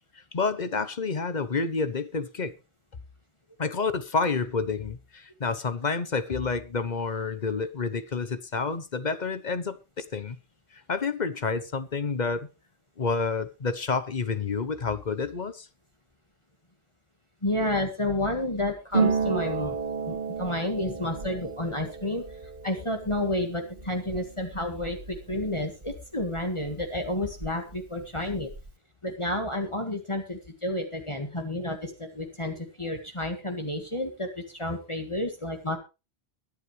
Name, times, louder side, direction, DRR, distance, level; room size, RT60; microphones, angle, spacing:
voice 1, 0.3-2.5 3.6-10.4 10.7-12.5 13.0-15.7, left 4 dB, 45° left, 1.1 m, -29 dB
voice 2, 17.4-19.8 20.1-22.2 22.6-28.5 29.0-35.8, left 1 dB, 30° left, 1.9 m, -30 dB
Harp, 18.9-26.4 26.7-27.8 28.0-28.7, right 5 dB, 55° right, 2.6 m, -33 dB
23.0 x 8.4 x 3.3 m
omnidirectional pair, 1.0 m